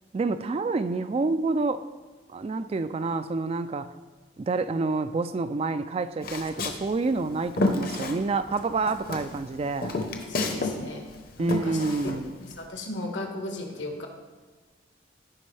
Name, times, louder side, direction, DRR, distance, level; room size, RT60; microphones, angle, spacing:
voice 1, 0.1-1.8 2.3-3.9 4.4-10.0 11.4-12.4, right 3 dB, 30° right, 0.3 m, -28 dB
Walk footsteps, 6.2-8.6 8.9-10.8 11.0-12.6, left 2 dB, 50° left, 0.9 m, -30 dB
voice 2, 10.3-11.0 11.4-11.8 12.0-12.1 12.6-14.1, left 2 dB, 80° left, 1.5 m, -35 dB
15.5 x 5.2 x 3.3 m
head